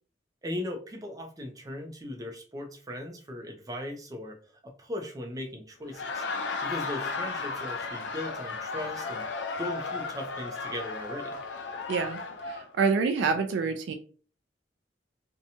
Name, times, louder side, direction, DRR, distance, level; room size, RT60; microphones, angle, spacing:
voice 1, 0.4-4.4 4.6-6.2 6.6-9.2 9.6-11.4, left 1 dB, 20° right, 3 dB, 0.4 m, -38 dB
Laughter, 5.8-12.7, left 4 dB, 80° left, 0.5 m, -34 dB
voice 2, 11.9-13.9, right 5 dB, 90° right, 6 dB, 0.3 m, -27 dB
2.7 x 2.2 x 2.7 m, 0.40 s
head